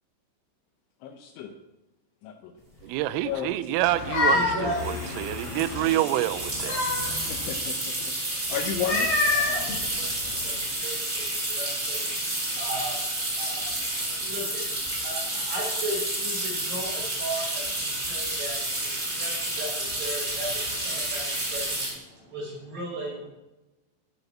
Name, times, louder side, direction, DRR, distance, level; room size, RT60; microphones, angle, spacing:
voice 1, 1.0-1.5 2.2-2.5 3.2-3.5 7.3-8.1 8.5-9.2, left 8 dB, 80° left, 6 dB, 2.9 m, -33 dB
sound 1, 2.8-2.9 3.1-3.4 4.7-21.9, right 1 dB, 15° right, 4.6 m, -30 dB
voice 2, 2.8-6.8, right 14 dB, 80° right, 12 dB, 3.2 m, -27 dB
sound 2, 3.8-5.9 6.3-7.5 8.7-10.5, left 3 dB, 50° left, 3.5 m, -28 dB
voice 3, 4.3-5.4 9.2-23.3, right 1 dB, 55° right, -3 dB, 5.5 m, -37 dB
14.5 x 6.8 x 7.1 m, 1.0 s
omnidirectional pair, 6.0 m